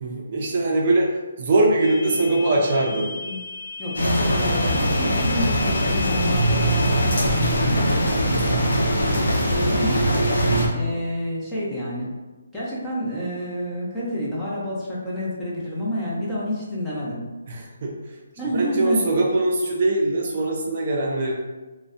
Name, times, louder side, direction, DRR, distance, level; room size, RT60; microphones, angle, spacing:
voice 1, 0.0-3.1 17.5-17.9 18.5-21.3, right 2 dB, 45° right, -1 dB, 0.4 m, -22 dB
sound 1, 1.8-8.1, left 4 dB, 40° left, 1.2 m, -36 dB
voice 2, 3.8-8.7 9.1-10.1 10.7-12.1 12.5-17.3 18.4-19.0, equal, 5° left, -9 dB, 0.6 m, -29 dB
sound 2, 3.9-10.7, equal, 85° left, 0.7 m, -21 dB
2.5 x 2.1 x 2.5 m, 1.2 s
hypercardioid pair, 160°, 0 cm